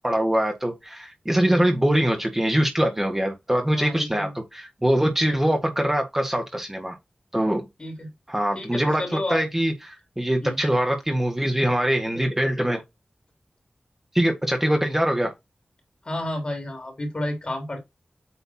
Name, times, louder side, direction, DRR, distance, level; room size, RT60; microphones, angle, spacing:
voice 1, 0.0-7.0 7.3-7.6 8.3-12.8 14.2-15.3, right 1 dB, 10° right, 1.7 m, -23 dB
voice 2, 1.3-1.6 3.7-4.4 7.8-8.1 8.5-9.4 10.4-10.6 16.0-17.8, left 1 dB, 40° left, 3.3 m, -31 dB
8.5 x 3.4 x 4.3 m
wide cardioid pair, 75°, 2 cm